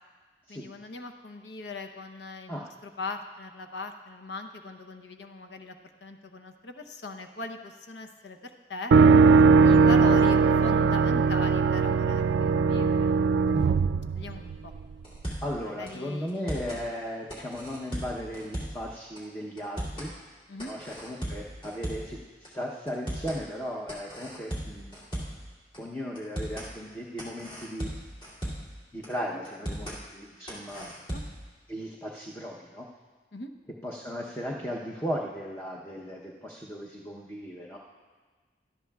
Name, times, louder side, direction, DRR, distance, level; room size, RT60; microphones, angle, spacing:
voice 1, 0.5-5.7 6.0-8.9 9.6-13.1 14.1-14.7 15.6-16.7 20.5-20.7 29.3-29.4 30.7-31.2 33.3-33.5, left 2 dB, 80° left, 6 dB, 0.8 m, -40 dB
sound 1, 8.9-14.8, right 5 dB, 80° right, 0.3 m, -20 dB
sound 2, 15.0-15.6 15.9-16.0 16.3-16.8 17.3-18.9 19.2-19.3 19.6-20.1 20.6-22.2 22.4-22.5 22.9-23.4 23.9-25.5 25.7-25.8 26.2-26.7 27.2-28.8 29.0-29.1 29.4-30.0 30.5-31.4, equal, 30° left, 2.6 m, -36 dB
voice 2, 15.4-20.1 20.7-25.0 25.8-27.9 28.9-30.9 31.7-32.9 33.8-37.8, equal, 10° left, -3 dB, 0.8 m, -36 dB
18.5 x 12.5 x 2.3 m, 1.4 s
head